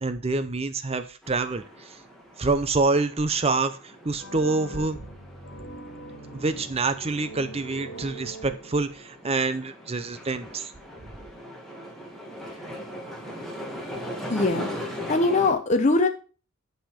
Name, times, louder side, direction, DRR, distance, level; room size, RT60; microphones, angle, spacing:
voice 1, 0.0-2.0 2.4-5.0 6.3-10.7, right 3 dB, 30° right, 11 dB, 0.6 m, -26 dB
sound 1, 1.2-15.5, equal, ahead, 2.2 m, -40 dB
sound 2, 4.2-9.1, right 2 dB, 75° left, 1.9 m, -42 dB
voice 2, 14.3-16.1, left 3 dB, 35° left, 4 dB, 0.8 m, -23 dB
10.0 x 5.7 x 5.1 m, 0.38 s
head